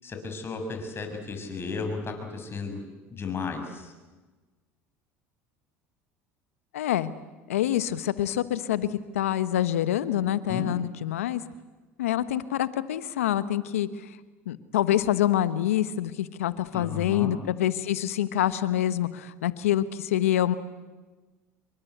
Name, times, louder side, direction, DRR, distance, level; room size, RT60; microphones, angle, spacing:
voice 1, 0.0-2.8 3.1-3.9 10.5-10.7 16.7-17.3, left 4 dB, 35° left, 5 dB, 6.8 m, -34 dB
voice 2, 6.7-7.1 7.5-8.9 9.1-11.4 12.0-13.9 14.5-20.5, left 12 dB, 90° left, 14 dB, 1.3 m, -26 dB
27.5 x 23.5 x 8.2 m, 1.3 s
hypercardioid pair, 80°, 7 cm